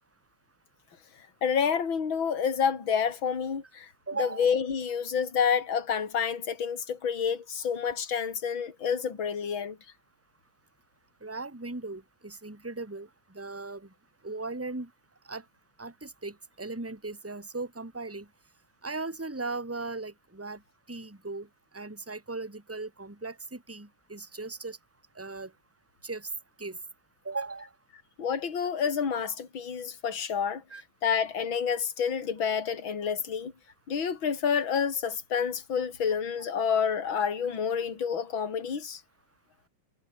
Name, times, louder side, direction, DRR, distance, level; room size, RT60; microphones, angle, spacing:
voice 1, 1.4-3.9 4.2-9.8 28.2-30.6 31.0-33.5 33.9-39.0, left 7 dB, 30° left, 3.7 m, -29 dB
voice 2, 4.1-4.5 11.2-13.1 13.3-13.9 14.2-14.9 15.3-15.4 15.8-18.3 18.8-20.6 20.9-21.5 21.7-24.8 25.1-25.5 26.0-26.3 26.6-26.8 27.2-27.7 30.7-30.8, right 3 dB, 5° right, 3.1 m, -37 dB
omnidirectional pair, 5.3 m